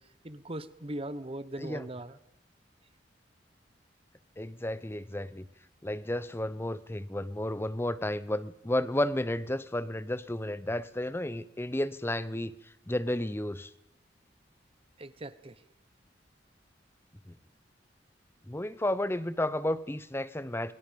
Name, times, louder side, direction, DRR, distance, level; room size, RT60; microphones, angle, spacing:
voice 1, 0.2-2.2 15.0-15.6, right 1 dB, 30° right, 14 dB, 1.2 m, -39 dB
voice 2, 4.4-5.5 5.8-12.5 12.9-13.7 17.3-17.4 18.5-20.7, left 1 dB, 15° left, 16 dB, 0.8 m, -32 dB
29.5 x 22.5 x 5.3 m, 0.87 s
head